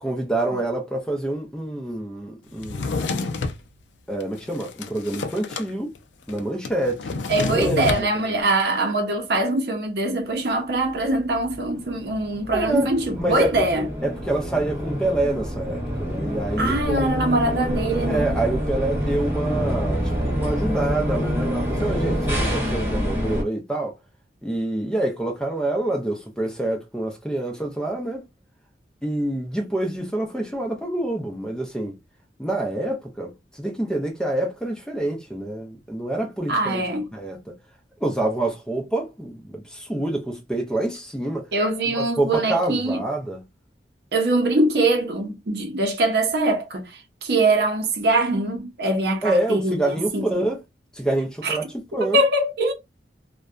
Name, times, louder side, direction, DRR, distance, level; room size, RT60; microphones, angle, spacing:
voice 1, 0.0-3.0 4.1-5.9 6.3-7.1 7.4-8.3 12.5-12.9 13.2-13.7 14.0-17.2 18.1-23.9 24.4-28.3 29.0-32.0 32.4-36.8 37.1-37.5 38.0-41.5 41.9-43.4 49.2-50.6 50.9-52.2, right 1 dB, 5° left, 0.5 m, -27 dB
Drawer open or close, 2.6-3.6 4.2-5.7 6.0-6.1 6.3-8.1, left 4 dB, 90° left, 0.4 m, -29 dB
voice 2, 7.3-13.9 16.6-18.4 36.5-37.1 41.5-43.0 44.1-50.5 51.4-51.6 52.0-52.7, right 2 dB, 65° right, 0.6 m, -23 dB
sound 1, 11.1-23.4, equal, 15° right, 0.9 m, -26 dB
2.6 x 2.2 x 2.2 m
head